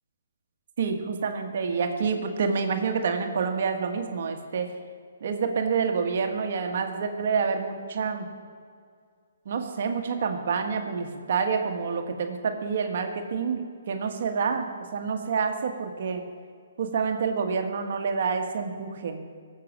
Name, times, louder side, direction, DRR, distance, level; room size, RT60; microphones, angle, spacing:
voice 1, 0.8-4.7 5.2-8.3 9.4-16.2 16.8-19.2, right 5 dB, 55° right, 5 dB, 1.4 m, -28 dB
17.5 x 7.6 x 7.3 m, 2.1 s
hypercardioid pair, 150°, 0 cm